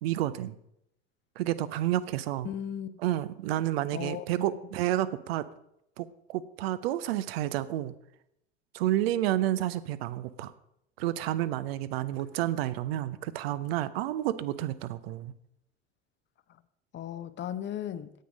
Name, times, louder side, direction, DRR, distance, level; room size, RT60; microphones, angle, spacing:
voice 1, 0.0-0.6 1.4-2.5 3.0-5.5 6.0-7.9 8.7-10.5 11.0-15.3, right 13 dB, 65° right, 15 dB, 0.7 m, -30 dB
voice 2, 2.4-3.0 3.9-4.2 16.9-18.1, left 10 dB, 35° left, 13 dB, 0.7 m, -36 dB
9.2 x 8.6 x 5.2 m, 0.79 s
hypercardioid pair, 70°, 32 cm